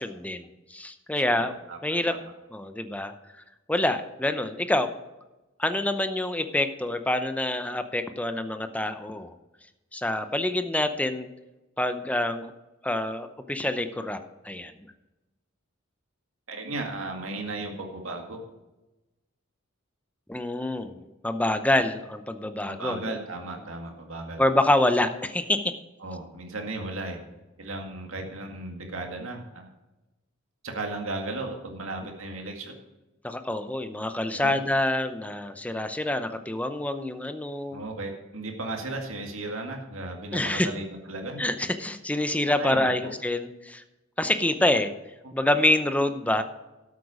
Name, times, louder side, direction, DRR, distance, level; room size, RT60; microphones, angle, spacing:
voice 1, 0.0-1.5 1.8-2.2 2.5-3.1 3.7-4.9 5.6-9.3 9.9-11.3 11.8-12.5 12.8-14.2 14.4-14.7 20.3-23.2 24.4-25.7 33.2-37.8 40.3-40.7 41.4-43.8 44.2-44.9 45.3-46.4, left 1 dB, 5° left, 9 dB, 0.7 m, -26 dB
voice 2, 1.1-2.2 16.5-18.4 22.7-24.5 26.0-27.2 27.6-29.7 30.6-32.8 34.3-34.6 37.7-41.4 42.6-42.9 45.2-45.4, right 2 dB, 85° right, 2 dB, 2.0 m, -35 dB
13.0 x 8.2 x 4.9 m, 1.0 s
head